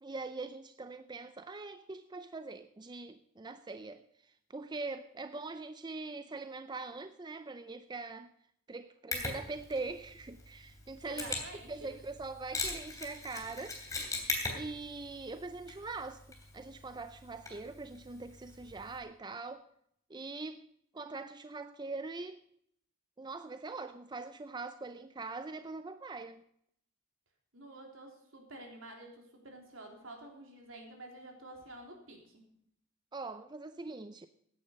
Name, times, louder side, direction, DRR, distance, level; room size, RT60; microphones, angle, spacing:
voice 1, 0.0-8.3 8.7-11.3 11.7-13.8 14.5-19.6 20.1-20.7 20.9-22.4 23.2-26.4 33.1-34.3, right 3 dB, 20° right, 0.5 m, -42 dB
Mechanisms, 9.1-19.0, left 3 dB, 15° left, 3.1 m, -41 dB
voice 2, 11.0-11.9 27.5-32.4, right 1 dB, 65° right, 3.6 m, -50 dB
16.0 x 9.9 x 5.3 m
head